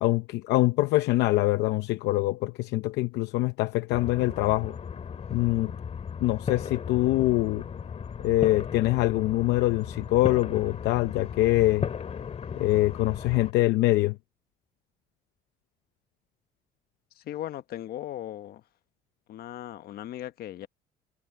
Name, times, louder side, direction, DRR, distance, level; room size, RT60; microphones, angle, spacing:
voice 1, 0.0-4.7 5.3-5.7 6.2-7.6 8.2-11.9 12.6-14.1, left 17 dB, 85° left, 0.7 m, -24 dB
sound 1, 3.9-13.5, left 7 dB, 40° left, 2.1 m, -36 dB
voice 2, 17.2-18.6 19.3-20.7, left 12 dB, 65° left, 1.2 m, -38 dB
cardioid pair, 110°, 17 cm